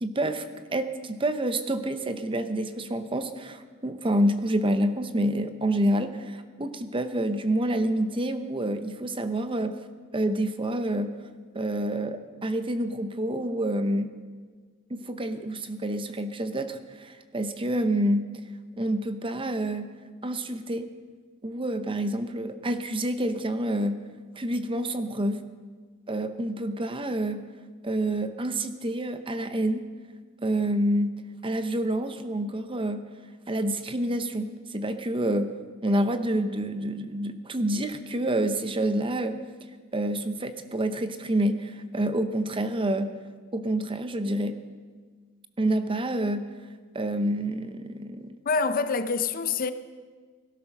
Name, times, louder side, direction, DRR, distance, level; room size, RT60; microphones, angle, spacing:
voice 1, 0.0-9.8 10.1-11.2 11.5-14.1 14.9-18.3 18.8-19.9 20.2-20.9 21.4-24.0 24.4-25.4 26.1-27.4 27.8-29.8 30.4-31.2 31.4-33.1 33.5-35.5 35.8-39.4 39.9-43.1 43.5-44.6 45.6-46.5 46.9-48.4, right 1 dB, 25° right, 0.7 m, -28 dB
voice 2, 48.5-49.7, left 4 dB, 40° left, 0.6 m, -26 dB
18.0 x 12.0 x 6.0 m
head